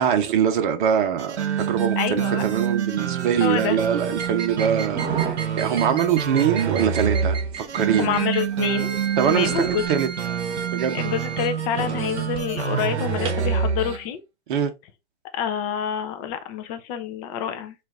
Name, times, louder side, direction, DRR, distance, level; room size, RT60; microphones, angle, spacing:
voice 1, 0.0-8.2 9.2-10.1 10.7-11.0 14.5-14.7, right 8 dB, 50° right, 1.0 m, -23 dB
sound 1, 1.2-14.0, right 7 dB, 85° right, 0.8 m, -27 dB
voice 2, 2.0-2.4 3.4-3.8 5.5-5.6 8.0-9.8 10.9-14.2 15.3-17.7, left 9 dB, 20° left, 0.4 m, -27 dB
sound 2, 4.1-13.5, right 6 dB, 15° right, 1.0 m, -34 dB
4.3 x 2.6 x 3.5 m
hypercardioid pair, 135°, 33 cm